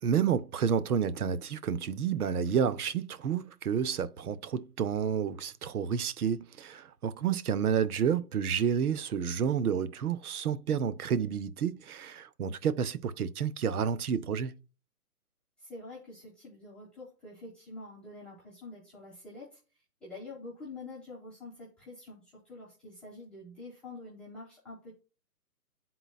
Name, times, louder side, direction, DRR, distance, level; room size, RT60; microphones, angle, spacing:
voice 1, 0.0-14.6, right 7 dB, 70° right, 0.7 m, -30 dB
voice 2, 15.6-19.6 20.0-24.9, left 2 dB, ahead, 1.3 m, -46 dB
11.0 x 3.9 x 2.3 m
hypercardioid pair, 160°, 47 cm